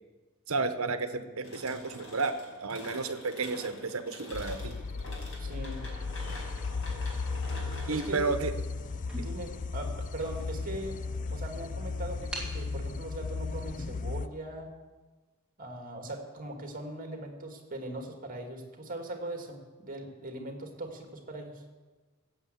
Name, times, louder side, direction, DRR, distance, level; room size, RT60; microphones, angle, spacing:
voice 1, 0.5-2.4 2.6-4.8 7.9-8.5 9.2-9.3, right 3 dB, 75° right, 10 dB, 1.0 m, -32 dB
sound 1, 1.4-10.1, left 1 dB, 70° left, 5.4 m, -47 dB
sound 2, 4.3-14.3, left 4 dB, 35° left, 0.4 m, -36 dB
voice 2, 5.4-5.9 7.9-8.2 9.1-11.0 11.3-14.8 15.6-21.6, right 1 dB, 40° right, 3 dB, 2.1 m, -40 dB
sound 3, 6.3-7.5 8.2-8.4 8.7-8.8 9.0-10.8 11.3-11.4 12.3-12.6, right 1 dB, 5° right, 3.3 m, -44 dB
16.5 x 7.5 x 8.1 m, 1.3 s
head